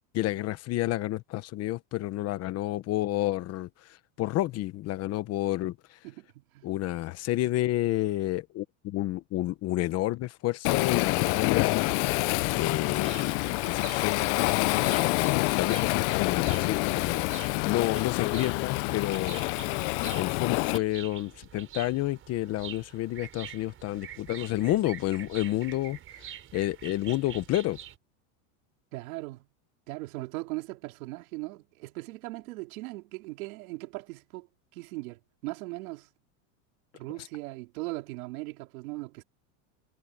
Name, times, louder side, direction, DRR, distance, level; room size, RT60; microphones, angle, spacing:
voice 1, 0.1-3.7 4.2-5.7 6.6-11.9 12.5-17.3 17.6-19.4 20.1-26.0 26.5-27.8, left 15 dB, 35° left, 1.0 m, -30 dB
voice 2, 6.0-6.7 28.9-29.5 29.9-34.5 34.7-36.1 36.9-39.2, right 22 dB, 75° right, 3.0 m, -39 dB
Waves surf, 10.6-20.8, left 25 dB, 55° left, 0.6 m, -27 dB
sound 1, 12.9-28.0, right 10 dB, 30° right, 5.1 m, -46 dB
supercardioid pair, 150°, 42 cm